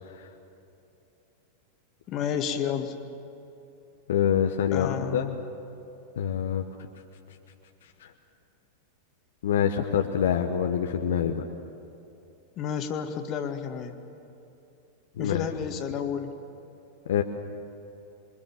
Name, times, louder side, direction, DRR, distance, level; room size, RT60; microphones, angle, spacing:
voice 1, 2.1-3.0 4.7-5.4 12.6-14.0 15.2-16.3, left 8 dB, 35° left, 7 dB, 2.0 m, -31 dB
voice 2, 4.1-5.2 6.2-6.6 9.4-11.4 15.2-15.5 17.1-17.2, left 8 dB, 60° left, 4 dB, 1.2 m, -25 dB
27.0 x 23.5 x 7.2 m, 2.8 s
figure-of-eight pair, 90°, 0 cm